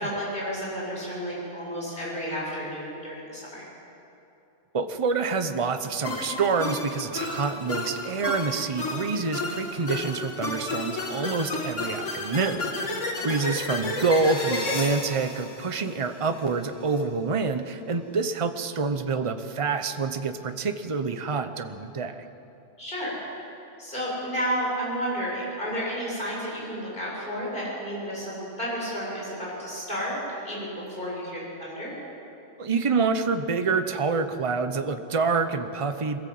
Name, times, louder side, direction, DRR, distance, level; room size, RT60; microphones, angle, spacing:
voice 1, 0.0-3.6 13.3-13.4 22.8-23.2 23.8-30.2 30.4-31.9, equal, 45° left, -5 dB, 7.5 m, -32 dB
voice 2, 4.7-22.2 32.6-36.2, right 4 dB, 30° right, 9 dB, 0.9 m, -27 dB
sound 1, 6.0-16.4, left 2 dB, 85° left, 2.3 m, -32 dB
23.0 x 16.0 x 7.8 m, 2.9 s
omnidirectional pair, 1.2 m